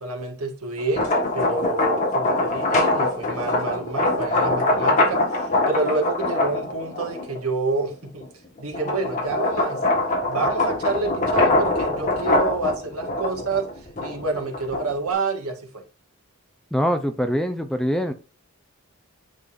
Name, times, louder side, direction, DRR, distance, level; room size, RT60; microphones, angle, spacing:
voice 1, 0.0-1.1 1.3-8.2 8.6-9.8 10.3-15.8, right 3 dB, 80° right, 1.7 m, -28 dB
sound 1, 0.8-7.4 7.9-15.1, left 2 dB, 35° left, 1.6 m, -23 dB
voice 2, 16.7-18.1, equal, ahead, 0.5 m, -23 dB
9.6 x 4.0 x 2.6 m
head